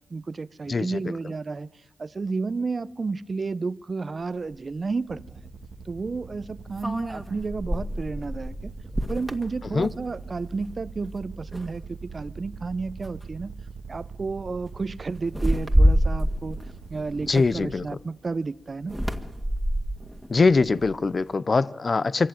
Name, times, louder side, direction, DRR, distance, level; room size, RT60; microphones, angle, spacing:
voice 1, 0.1-1.7 2.0-5.2 5.8-8.7 9.1-13.5 13.9-16.6 16.9-19.0, right 4 dB, 50° right, 0.7 m, -31 dB
voice 2, 0.7-1.0 9.7-9.9 17.3-17.8 20.3-22.3, left 4 dB, 50° left, 0.6 m, -22 dB
sound 1, 4.5-4.6 6.8-10.4 10.8-11.1 11.5-12.2 13.0-13.2 13.6-13.9 15.3-17.9 18.8-21.2, equal, 5° right, 2.0 m, -27 dB
sound 2, 5.1-17.9, right 5 dB, 90° right, 1.4 m, -42 dB
23.5 x 14.5 x 9.0 m
supercardioid pair, 40°, 0 cm